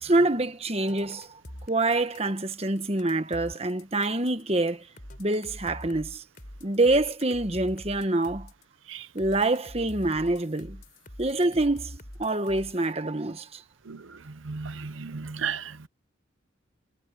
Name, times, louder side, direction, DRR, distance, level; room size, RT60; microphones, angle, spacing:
voice 1, 0.0-1.3 1.7-4.8 5.2-6.2 6.6-8.5 9.1-10.8 11.2-13.6, right 2 dB, 30° right, 1.3 m, -26 dB
sound 1, 0.9-4.4 5.0-8.6 9.2-12.9, left 1 dB, 45° left, 4.9 m, -44 dB
voice 2, 14.5-15.9, right 6 dB, 85° right, 0.8 m, -33 dB
head